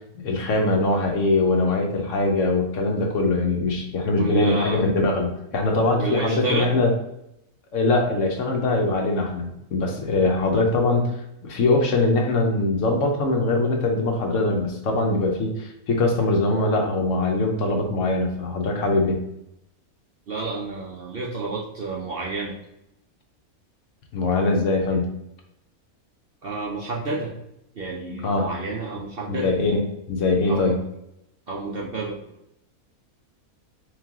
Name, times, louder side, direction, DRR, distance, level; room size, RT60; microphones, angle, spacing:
voice 1, 0.2-6.9 7.7-11.1 11.4-19.2 24.1-25.1 28.1-28.5 29.3-29.8 30.1-30.8, left 2 dB, 65° left, 2 dB, 1.0 m, -22 dB
voice 2, 4.2-4.8 6.0-6.7 10.3-10.5 20.3-22.5 26.4-27.3 27.8-29.6 30.5-30.8 31.5-32.2, right 3 dB, 55° right, -3 dB, 0.6 m, -30 dB
3.3 x 3.3 x 3.5 m, 0.83 s
omnidirectional pair, 1.5 m